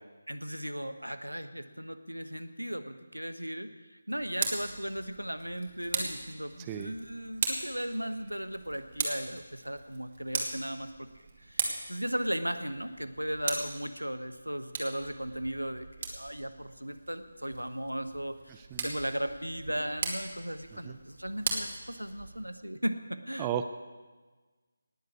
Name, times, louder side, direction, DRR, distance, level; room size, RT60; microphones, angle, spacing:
voice 1, 0.3-23.5, equal, 85° right, 10 dB, 1.2 m, -36 dB
Tick, 4.1-22.5, right 3 dB, 35° right, 2.4 m, -39 dB
voice 2, 23.4-23.7, right 9 dB, 15° right, 8 dB, 0.7 m, -34 dB
19.0 x 7.9 x 8.4 m, 1.3 s
figure-of-eight pair, 155°, 0 cm